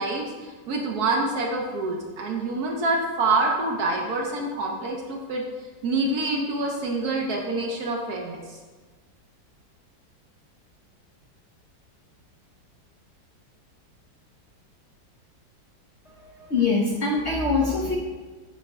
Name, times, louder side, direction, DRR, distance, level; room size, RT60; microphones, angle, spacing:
voice 1, 0.0-5.4 5.8-8.6, right 2 dB, 60° right, 0 dB, 1.2 m, -26 dB
voice 2, 16.0-18.0, left 3 dB, 50° left, -4 dB, 0.8 m, -24 dB
7.0 x 5.3 x 3.5 m, 1.3 s
omnidirectional pair, 2.0 m